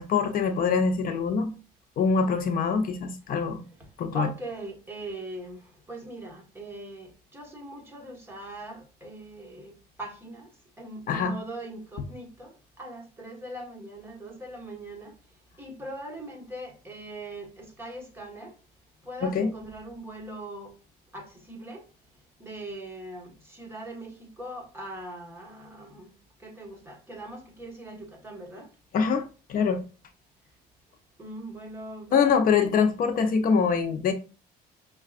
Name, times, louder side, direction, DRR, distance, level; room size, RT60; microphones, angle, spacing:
voice 1, 0.0-1.5 2.0-3.6 4.0-4.3 11.1-11.3 19.2-19.5 28.9-29.8 32.1-34.1, left 5 dB, 55° left, 0.6 m, -24 dB
voice 2, 4.1-10.5 10.8-15.1 15.6-18.5 19.0-20.8 21.1-21.9 22.4-26.1 26.4-28.7 31.2-32.7, right 1 dB, 15° right, 1.4 m, -41 dB
5.4 x 2.3 x 2.4 m
cardioid pair, 110°, 17 cm